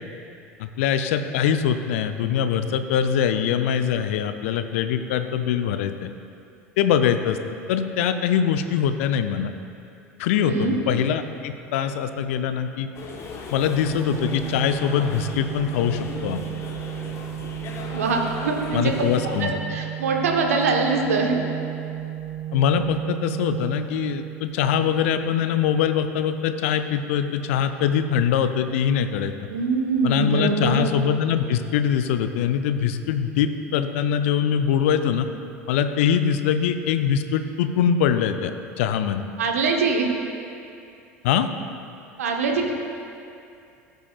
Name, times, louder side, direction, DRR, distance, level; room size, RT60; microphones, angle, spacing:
voice 1, 0.6-6.1 6.8-7.4 7.7-9.5 10.2-12.9 13.5-16.4 18.7-19.5 22.5-29.3 30.0-35.3 35.7-38.5 38.8-39.2 41.2-41.5, left 8 dB, 65° left, 9 dB, 0.6 m, -23 dB
voice 2, 10.4-10.8 17.9-18.9 19.4-21.4 29.5-30.9 39.4-40.1 42.2-42.7, right 4 dB, 75° right, 2 dB, 1.1 m, -23 dB
sound 1, 12.9-19.4, left 4 dB, 40° left, 1.2 m, -37 dB
Organ, 14.1-25.0, right 12 dB, 40° right, 0.4 m, -33 dB
16.0 x 7.8 x 2.4 m, 2.5 s
figure-of-eight pair, 70°, 8 cm